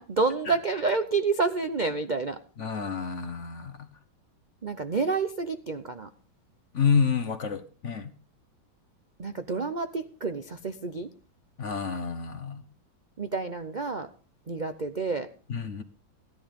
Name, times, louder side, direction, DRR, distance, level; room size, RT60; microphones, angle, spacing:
voice 1, 0.0-2.4 4.6-6.1 9.2-11.1 13.2-14.1 14.5-15.3, right 4 dB, 65° right, 9 dB, 0.4 m, -29 dB
voice 2, 2.6-3.9 6.7-8.1 11.6-12.6 15.5-15.8, left 6 dB, 45° left, 12 dB, 1.1 m, -28 dB
16.0 x 11.0 x 5.2 m, 0.37 s
omnidirectional pair, 2.2 m